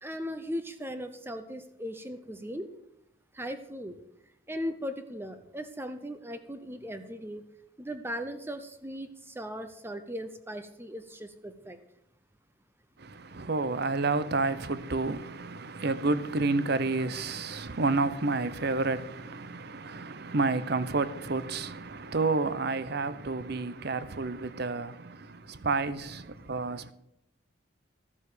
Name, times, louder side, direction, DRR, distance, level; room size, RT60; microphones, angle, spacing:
voice 1, 0.0-2.7 3.3-4.0 4.5-7.4 7.8-11.8, equal, 10° right, 0.6 m, -38 dB
voice 2, 13.0-26.9, right 3 dB, 50° right, 0.7 m, -30 dB
13.0 x 7.3 x 6.7 m
head